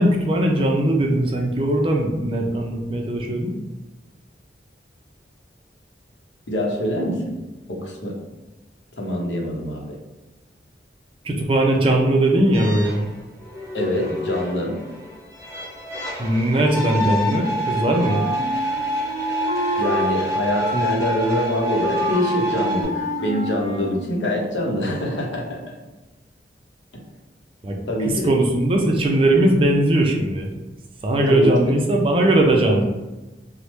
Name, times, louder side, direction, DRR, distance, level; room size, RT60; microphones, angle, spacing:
voice 1, 0.0-3.5 11.2-13.0 16.2-18.2 27.6-27.8 28.2-30.5 31.0-32.8, right 1 dB, 30° right, 1 dB, 0.4 m, -19 dB
voice 2, 6.5-7.4 7.7-8.2 9.0-10.0 13.7-14.8 19.8-25.8 27.9-28.3 31.3-31.5, left 1 dB, 85° left, 0 dB, 0.7 m, -24 dB
sound 1, 12.5-22.8, right 1 dB, 20° left, 1.1 m, -27 dB
Wind instrument woodwind instrument, 18.0-20.1 20.5-21.5 21.8-24.0, left 1 dB, 55° left, 0.8 m, -29 dB
3.0 x 2.0 x 3.1 m, 1.1 s
head